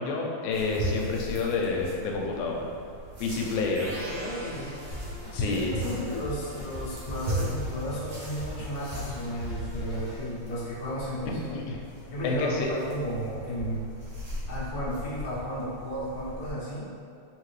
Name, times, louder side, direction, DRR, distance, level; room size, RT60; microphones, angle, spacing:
voice 1, 0.0-2.7 3.2-3.9 5.3-5.7 11.5-11.8 12.2-12.7, left 3 dB, 90° left, 0 dB, 2.0 m, -28 dB
sound 1, 0.5-16.5, equal, 60° right, 1.0 m, -38 dB
sound 2, 3.7-5.6, right 2 dB, 75° right, 1.7 m, -41 dB
voice 2, 4.1-4.7 5.3-11.6 12.1-13.9 14.5-16.9, equal, 55° left, -9 dB, 1.1 m, -34 dB
Drum kit, 4.9-10.3, equal, 35° left, 1.1 m, -40 dB
3.9 x 3.6 x 3.2 m, 2.4 s
omnidirectional pair, 3.3 m